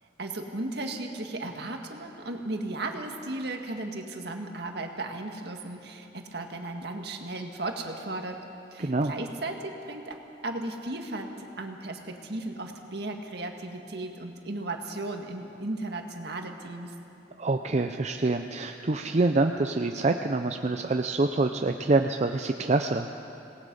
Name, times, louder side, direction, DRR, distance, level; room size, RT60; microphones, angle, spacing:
voice 1, 0.2-8.4 8.7-10.2 10.4-16.9, right 2 dB, 65° right, 3 dB, 1.9 m, -35 dB
voice 2, 8.8-9.1 17.4-23.1, right 3 dB, 40° right, 5 dB, 0.6 m, -26 dB
26.5 x 19.0 x 5.4 m, 2.8 s
head